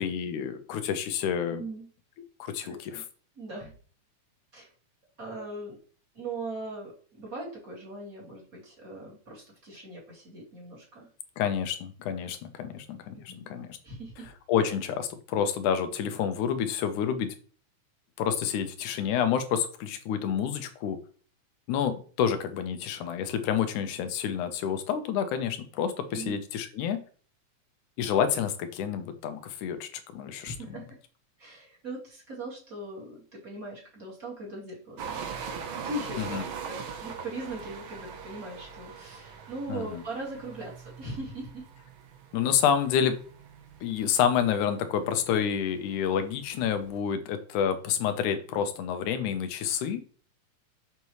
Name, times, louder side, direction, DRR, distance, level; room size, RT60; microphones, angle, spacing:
voice 1, 0.0-1.6 2.4-3.0 11.4-13.7 14.5-17.3 18.2-21.0 21.7-27.0 28.0-30.6 36.2-36.4 39.7-40.0 42.3-43.2 43.8-50.0, left 8 dB, 80° left, 9 dB, 2.2 m, -28 dB
voice 2, 1.5-1.9 2.6-3.1 3.4-3.7 4.5-4.7 5.2-5.8 6.1-6.9 7.2-11.1 13.1-13.5 13.8-14.3 26.1-26.4 30.4-31.0 31.4-35.3 35.7-36.3 36.7-41.7, right 2 dB, 30° right, -5 dB, 2.9 m, -40 dB
sound 1, 35.0-47.0, right 6 dB, 75° right, 1.2 m, -42 dB
6.8 x 6.0 x 3.1 m, 0.42 s
omnidirectional pair, 3.5 m